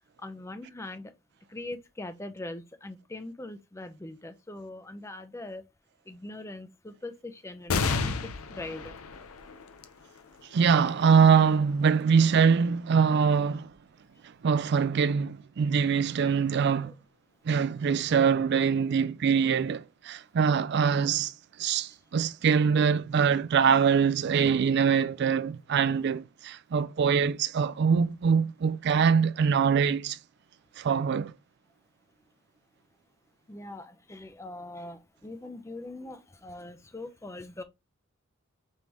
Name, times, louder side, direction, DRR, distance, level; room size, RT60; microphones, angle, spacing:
voice 1, 0.2-1.1 1.5-5.6 6.1-8.9 16.9-17.0 33.5-37.6, left 2 dB, 15° left, 0.5 m, -41 dB
sound 1, 7.7-14.6 15.2-15.3 16.4-17.0, left 4 dB, 85° left, 0.6 m, -36 dB
voice 2, 10.5-13.7 14.4-16.9 17.4-21.3 21.6-30.2 30.8-31.3, right 6 dB, 50° right, 0.3 m, -23 dB
5.3 x 3.3 x 3.0 m
head